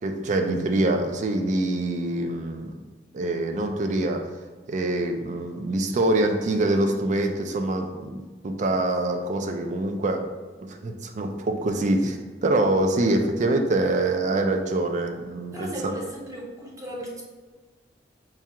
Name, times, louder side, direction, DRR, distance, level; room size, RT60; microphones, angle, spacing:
voice 1, 0.0-2.7 3.1-4.3 4.7-10.3 10.6-15.9, right 2 dB, 40° right, 5 dB, 0.4 m, -25 dB
voice 2, 15.5-17.2, equal, 20° right, -3 dB, 0.7 m, -36 dB
4.6 x 2.3 x 2.8 m, 1.3 s
head